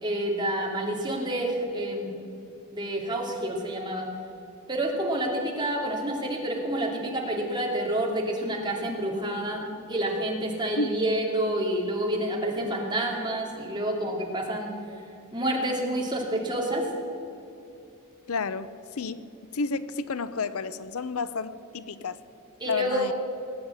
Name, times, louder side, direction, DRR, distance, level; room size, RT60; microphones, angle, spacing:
voice 1, 0.0-2.1 2.7-4.1 4.7-14.7 15.3-16.8 22.6-23.1, right 1 dB, 20° right, 0 dB, 2.4 m, -28 dB
voice 2, 18.3-18.7 19.0-19.2 19.5-22.2 22.6-23.1, left 4 dB, 75° left, 15 dB, 0.6 m, -30 dB
19.0 x 8.7 x 8.2 m, 2.7 s
head